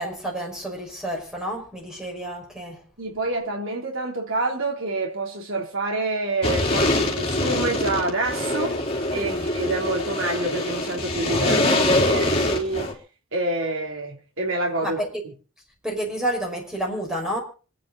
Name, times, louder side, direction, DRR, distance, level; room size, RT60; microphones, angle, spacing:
voice 1, 0.0-2.8 9.1-9.5 14.8-15.1 15.8-17.4, right 1 dB, 5° right, 5.5 m, -30 dB
voice 2, 3.0-8.8 9.1-12.9 13.3-15.0, right 2 dB, 65° right, 3.3 m, -27 dB
sound 1, 6.4-12.9, left 1 dB, 25° left, 3.9 m, -24 dB
26.5 x 9.8 x 4.1 m
head